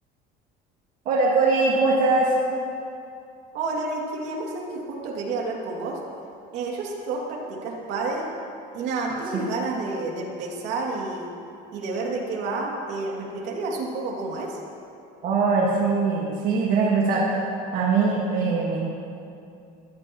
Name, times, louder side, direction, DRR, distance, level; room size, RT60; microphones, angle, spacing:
voice 1, 1.1-2.3 9.3-9.5 15.2-17.2 17.7-18.9, right 4 dB, 50° right, -3 dB, 1.7 m, -21 dB
voice 2, 3.5-6.0 6.5-8.3 8.7-11.3 11.7-14.6, right 3 dB, 75° right, -1 dB, 2.6 m, -30 dB
20.5 x 14.0 x 3.1 m, 2.6 s
cardioid pair, 160°, 18 cm